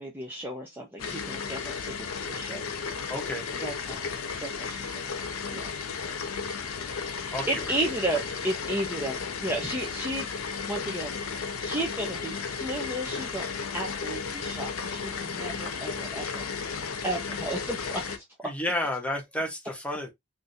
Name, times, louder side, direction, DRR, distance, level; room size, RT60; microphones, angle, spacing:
voice 1, 0.0-2.6 3.6-4.1 4.4-5.1 5.5-5.7 7.1-11.2 11.6-13.4 13.7-16.4 17.0-18.5, right 1 dB, 10° right, 0.6 m, -34 dB
sound 1, 1.0-18.2, left 5 dB, 75° left, 0.6 m, -34 dB
voice 2, 3.1-3.5 7.3-7.4 18.4-20.1, left 1 dB, 5° left, 1.0 m, -31 dB
3.5 x 2.7 x 2.6 m
head